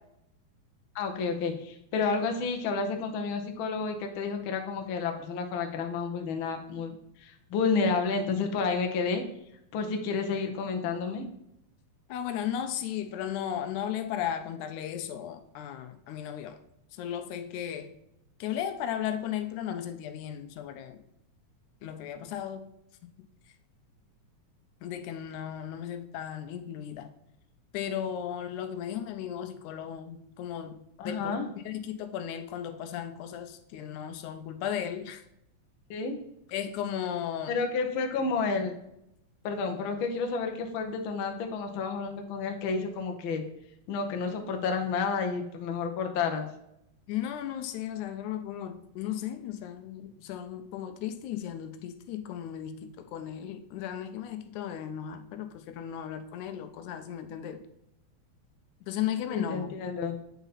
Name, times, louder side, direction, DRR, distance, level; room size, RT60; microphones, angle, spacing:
voice 1, 0.9-9.2 9.7-11.2 31.0-31.5 35.9-36.2 37.5-38.7 39.4-43.4 43.9-46.5 59.3-60.2, left 4 dB, 70° left, 4 dB, 1.3 m, -30 dB
voice 2, 12.1-16.6 17.0-17.9 18.4-21.0 21.8-22.7 24.8-27.1 27.7-30.8 31.0-31.4 31.7-35.2 36.5-37.5 47.1-57.6 58.8-59.7, left 10 dB, 85° left, 8 dB, 2.1 m, -35 dB
8.1 x 4.0 x 4.0 m, 0.79 s
omnidirectional pair, 3.4 m